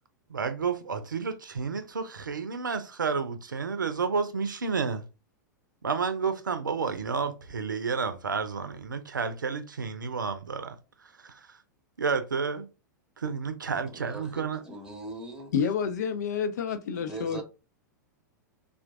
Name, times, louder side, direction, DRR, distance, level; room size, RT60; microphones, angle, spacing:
voice 1, 0.3-5.0 5.8-11.6 12.0-12.7 13.2-14.6, right 5 dB, 80° right, 0.6 m, -31 dB
voice 2, 13.8-15.5 16.9-17.4, right 2 dB, 5° right, 1.3 m, -41 dB
voice 3, 15.5-17.4, left 7 dB, 60° left, 0.6 m, -29 dB
4.4 x 2.5 x 2.4 m
figure-of-eight pair, 95°, 10 cm